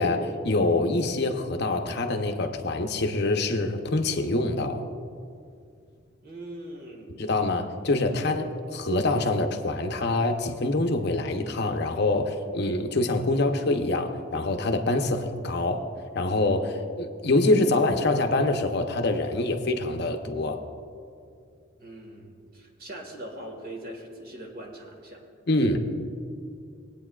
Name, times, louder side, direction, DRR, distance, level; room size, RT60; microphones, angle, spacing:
voice 1, 0.0-4.8 7.2-15.9 16.1-20.6 25.5-25.8, left 2 dB, 60° left, 5 dB, 0.7 m, -25 dB
voice 2, 6.2-7.1 21.8-25.2 25.6-25.7, right 1 dB, 50° right, 1 dB, 1.7 m, -41 dB
21.0 x 8.9 x 2.4 m, 2.3 s
head